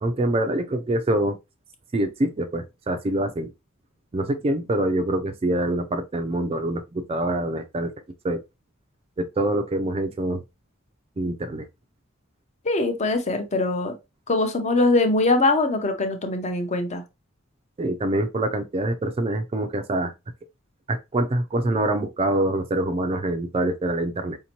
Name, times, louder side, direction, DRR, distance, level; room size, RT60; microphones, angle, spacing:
voice 1, 0.0-1.4 1.9-3.5 4.1-7.9 8.2-8.4 9.2-10.4 11.2-11.7 17.8-20.1 20.9-24.4, right 1 dB, 25° right, 0.4 m, -25 dB
voice 2, 12.6-13.9 14.3-17.0, left 2 dB, 35° left, 0.7 m, -22 dB
5.1 x 2.8 x 2.8 m
head